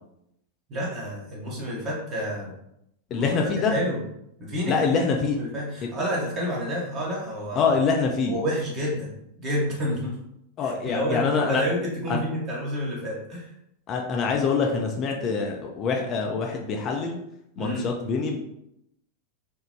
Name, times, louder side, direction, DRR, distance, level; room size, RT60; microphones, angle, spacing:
voice 1, 0.7-2.5 3.1-4.0 4.4-5.0 5.3-7.7 8.3-9.1 9.4-10.1 10.6-13.5 17.6-17.8, equal, 35° right, -4 dB, 0.9 m, -29 dB
voice 2, 3.1-3.7 4.7-5.4 7.6-8.4 10.6-11.6 12.1-12.2 13.9-17.2 17.6-18.4, left 5 dB, 30° left, 1 dB, 0.3 m, -25 dB
3.0 x 2.0 x 2.7 m, 0.79 s
figure-of-eight pair, 90°, 0 cm